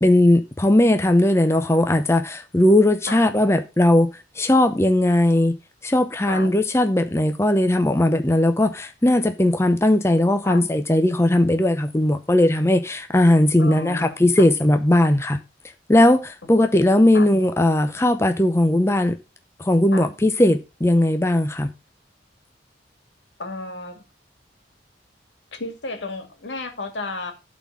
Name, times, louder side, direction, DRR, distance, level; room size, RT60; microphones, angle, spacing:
voice 1, 0.0-4.1 4.4-5.6 5.8-15.4 15.9-19.1 19.6-21.7, left 1 dB, 15° left, 0.6 m, -18 dB
voice 2, 13.6-14.1 14.4-14.5 17.1-17.3 19.9-20.1 23.4-24.0 25.5-27.3, left 3 dB, 85° left, 2.2 m, -32 dB
12.0 x 4.1 x 6.0 m
head